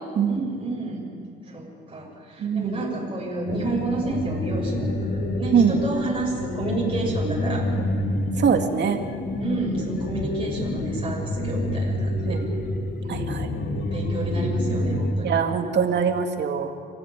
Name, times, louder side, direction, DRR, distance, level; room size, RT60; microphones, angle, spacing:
voice 1, 0.2-1.0 1.4-7.7 9.4-12.4 13.0-13.3 13.9-15.3, right 2 dB, 25° right, -4 dB, 6.8 m, -30 dB
voice 2, 2.4-2.8 5.5-5.8 8.4-9.0 12.3-12.4 13.1-13.5 15.2-16.7, right 7 dB, 60° right, 5 dB, 2.4 m, -22 dB
sound 1, 3.5-15.1, left 1 dB, 60° left, 2.8 m, -28 dB
27.5 x 15.5 x 9.3 m, 2.2 s
cardioid pair, 90°, 20 cm